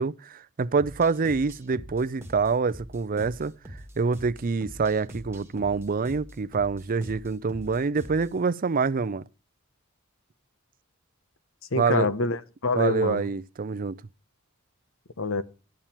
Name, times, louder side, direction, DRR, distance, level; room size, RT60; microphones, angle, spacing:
voice 1, 0.0-3.5 4.0-9.2 11.7-12.1 12.8-14.0, right 4 dB, 40° right, 0.5 m, -26 dB
sound 1, 0.8-8.4, equal, 10° right, 1.9 m, -44 dB
voice 2, 11.7-13.3 15.2-15.4, left 3 dB, 65° left, 1.0 m, -26 dB
13.0 x 8.9 x 4.4 m
head